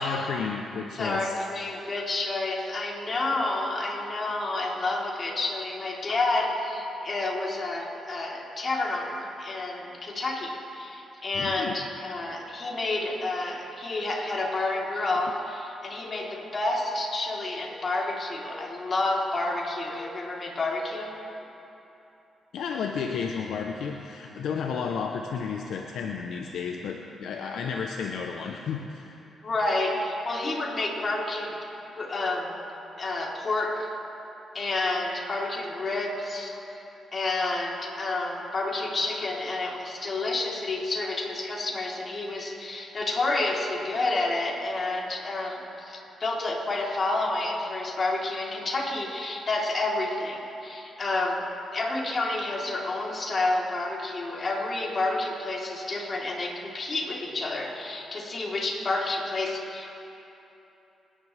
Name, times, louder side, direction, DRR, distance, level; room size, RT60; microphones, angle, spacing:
voice 1, 0.0-1.3 11.3-11.8 22.5-29.2, left 6 dB, 75° left, 3 dB, 0.7 m, -32 dB
voice 2, 0.9-21.2 29.4-31.6 32.0-32.6 33.0-33.9 34.5-36.5 37.1-51.4 51.7-59.9, left 2 dB, 45° left, -2 dB, 3.4 m, -29 dB
29.0 x 11.0 x 3.4 m, 2.9 s
supercardioid pair, 55°, 0 cm